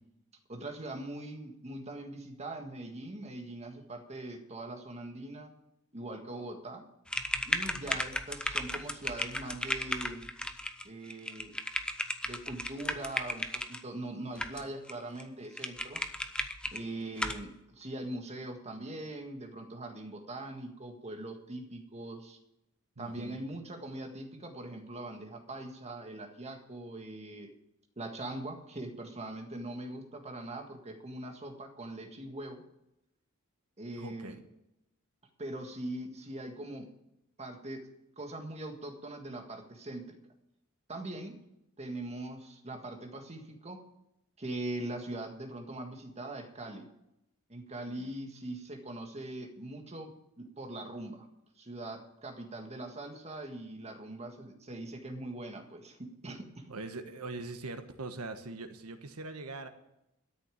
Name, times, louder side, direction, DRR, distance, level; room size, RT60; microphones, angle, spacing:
voice 1, 0.5-5.5 5.9-6.9 7.5-10.3 10.8-11.5 12.2-16.0 16.7-22.4 23.0-27.5 28.0-32.6 33.8-34.4 35.4-36.9 37.4-37.9 38.2-40.2 40.9-41.4 41.8-43.8 44.4-46.9 47.5-51.3 51.6-56.7, right 1 dB, 30° right, 4 dB, 1.7 m, -41 dB
sound 1, 7.1-13.8 14.4-14.9 15.2-15.3 15.6-16.8 17.2-17.4, left 1 dB, 5° left, 0.7 m, -35 dB
voice 2, 23.0-23.4 34.0-34.4 56.7-59.7, right 3 dB, 90° right, 7 dB, 1.4 m, -42 dB
13.0 x 6.9 x 9.1 m, 0.85 s
head